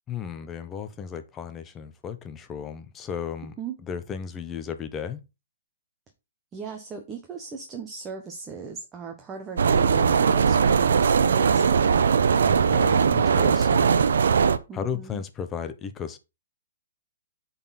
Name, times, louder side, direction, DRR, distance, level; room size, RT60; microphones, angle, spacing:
voice 1, 0.1-3.5 3.9-5.2 12.4-14.0 14.7-16.2, left 7 dB, 20° left, 0.7 m, -34 dB
voice 2, 6.5-12.0 14.7-15.2, right 5 dB, 15° right, 1.1 m, -38 dB
sound 1, 9.6-14.6, right 6 dB, 80° right, 0.7 m, -20 dB
8.4 x 4.1 x 4.1 m
hypercardioid pair, 145°, 0 cm